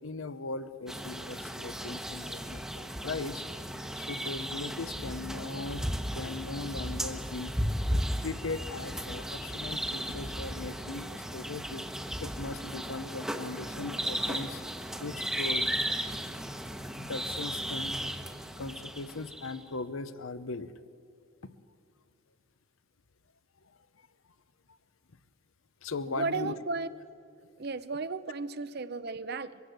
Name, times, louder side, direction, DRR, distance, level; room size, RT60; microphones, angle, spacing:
voice 1, 0.0-3.4 3.9-7.5 7.9-11.9 12.2-14.6 15.0-16.0 17.0-18.1 18.6-20.7 21.4-21.5 25.8-26.5, left 3 dB, 75° left, 14 dB, 0.8 m, -39 dB
sound 1, 0.9-19.6, equal, 5° right, 1.1 m, -35 dB
voice 2, 26.1-26.9 27.6-29.6, right 3 dB, 50° right, 14 dB, 0.7 m, -34 dB
23.0 x 16.5 x 8.0 m, 2.4 s
head